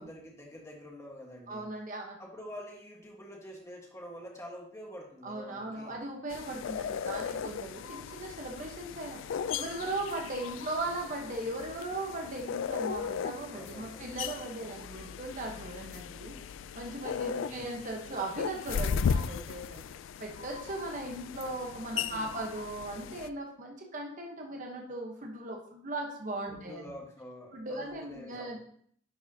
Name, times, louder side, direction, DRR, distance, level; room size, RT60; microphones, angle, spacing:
voice 1, 0.0-1.7 2.2-6.0 13.5-14.1 17.0-17.8 21.9-22.4 26.5-28.6, equal, 15° left, -1 dB, 1.4 m, -47 dB
voice 2, 1.5-2.2 5.2-16.3 16.7-19.8 20.2-26.8 27.5-28.6, right 2 dB, 40° right, 0 dB, 1.1 m, -38 dB
sound 1, 6.3-23.3, left 7 dB, 80° left, 0.3 m, -37 dB
10.5 x 4.7 x 2.8 m, 0.62 s
head